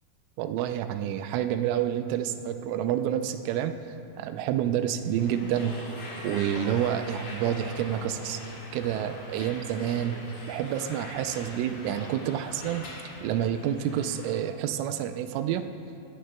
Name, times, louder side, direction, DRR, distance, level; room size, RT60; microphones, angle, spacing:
voice 1, 0.4-3.7 4.2-5.8 6.2-8.4 8.7-10.2 10.5-12.9 13.2-15.6, right 10 dB, 85° right, 8 dB, 3.0 m, -28 dB
sound 1, 4.9-14.4, left 1 dB, 45° left, 2.2 m, -42 dB
Guitar, 6.2-13.4, right 1 dB, 40° right, 4.3 m, -53 dB
23.5 x 16.5 x 2.2 m, 2.7 s
omnidirectional pair, 5.7 m